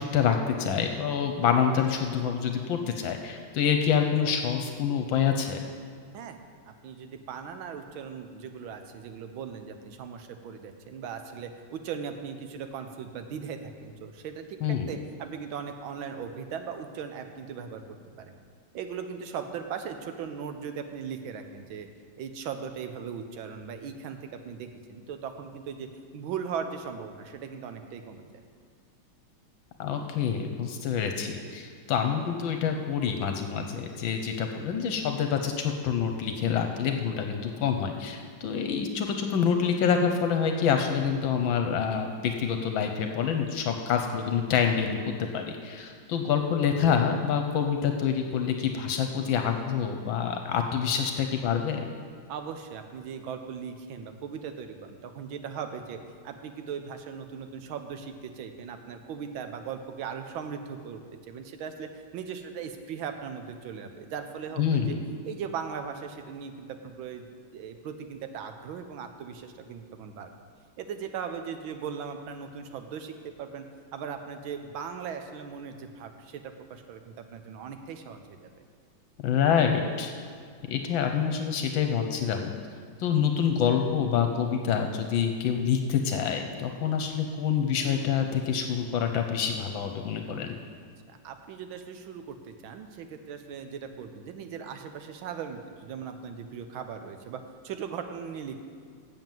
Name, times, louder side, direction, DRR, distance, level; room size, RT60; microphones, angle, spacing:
voice 1, 0.0-5.6 14.6-14.9 29.8-51.9 64.6-65.0 79.2-80.1 80.7-82.5 83.0-90.5, left 7 dB, 75° left, 5 dB, 1.4 m, -27 dB
voice 2, 6.6-14.6 14.9-18.4 18.7-21.9 22.2-25.9 26.1-28.2 52.3-56.0 56.2-61.0 61.3-65.0 65.2-67.3 67.5-70.3 70.8-73.6 73.9-78.5 91.1-98.6, right 7 dB, 75° right, 7 dB, 1.5 m, -38 dB
7.8 x 7.2 x 7.5 m, 2.2 s
omnidirectional pair, 2.3 m